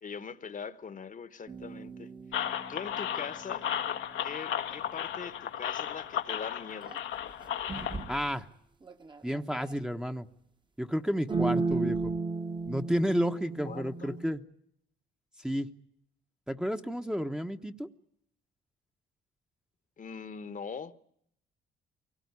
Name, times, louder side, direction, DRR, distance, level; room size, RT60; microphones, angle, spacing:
voice 1, 0.0-3.7 4.2-7.0 13.6-14.2 20.0-20.9, left 6 dB, 40° left, 1.2 m, -42 dB
sound 1, 1.5-3.8 6.9-7.0 7.7-8.2 8.9-9.7 11.3-14.3, right 3 dB, 25° right, 1.3 m, -34 dB
sound 2, 2.3-8.2, left 10 dB, 80° left, 1.4 m, -35 dB
voice 2, 8.1-8.5 9.2-10.3 10.8-12.1 12.7-14.4 15.4-15.7 16.5-17.9, equal, 5° right, 1.1 m, -31 dB
23.5 x 18.0 x 9.7 m
cardioid pair, 90°, 20 cm